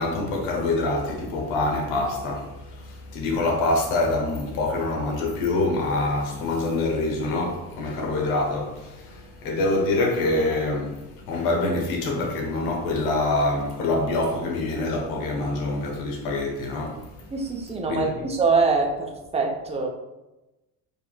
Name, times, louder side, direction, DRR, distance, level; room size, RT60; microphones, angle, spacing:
voice 1, 0.0-17.3 17.9-18.0, left 2 dB, 75° left, 1.1 m, -25 dB
voice 2, 17.3-19.9, right 4 dB, 15° right, 0.8 m, -24 dB
4.8 x 3.0 x 2.4 m
hypercardioid pair, 70°, 48 cm